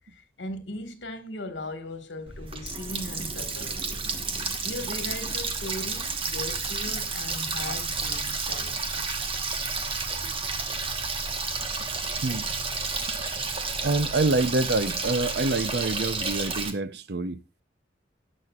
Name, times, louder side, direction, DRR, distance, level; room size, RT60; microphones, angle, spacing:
voice 1, 0.1-4.0 4.6-9.3, left 2 dB, 75° left, 1.7 m, -38 dB
Water tap faucet, 2.3-16.7, right 4 dB, 30° right, 1.2 m, -31 dB
voice 2, 13.8-17.6, right 2 dB, 60° right, 0.7 m, -26 dB
17.5 x 6.4 x 2.4 m
head